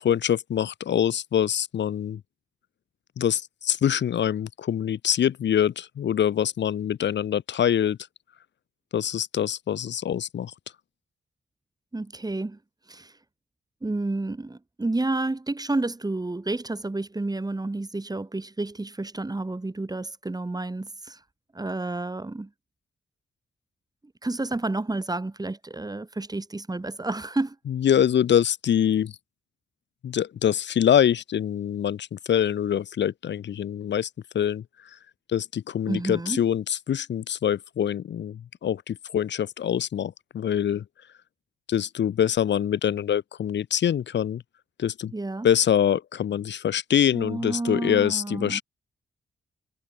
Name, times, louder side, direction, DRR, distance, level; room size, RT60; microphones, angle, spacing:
voice 1, 0.0-2.2 3.2-8.0 8.9-10.5 27.7-29.1 30.0-34.1 34.3-34.6 35.3-40.8 41.7-44.4 44.8-45.1 45.4-48.6, left 9 dB, 80° left, 3.9 m, -24 dB
voice 2, 11.9-12.6 12.9-13.1 13.8-21.2 21.5-22.5 24.2-27.6 35.9-36.4 45.1-45.5 47.1-48.6, right 2 dB, 20° right, 3.3 m, -30 dB
cardioid pair, 70°, 18 cm